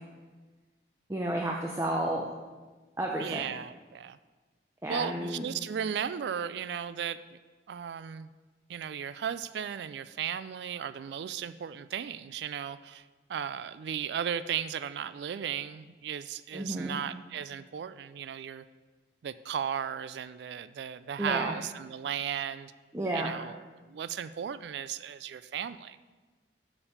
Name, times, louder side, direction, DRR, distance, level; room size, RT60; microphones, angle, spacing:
voice 1, 1.1-2.2 3.0-3.4 4.8-5.5 16.5-17.0 21.2-21.5 22.9-23.3, right 1 dB, 15° right, 0 dB, 0.6 m, -31 dB
voice 2, 3.2-4.2 4.9-7.2 7.7-8.3 8.7-13.0 13.3-18.6 19.2-22.7 23.1-26.0, right 8 dB, 75° right, 15 dB, 0.3 m, -35 dB
7.1 x 5.3 x 6.6 m, 1.3 s
head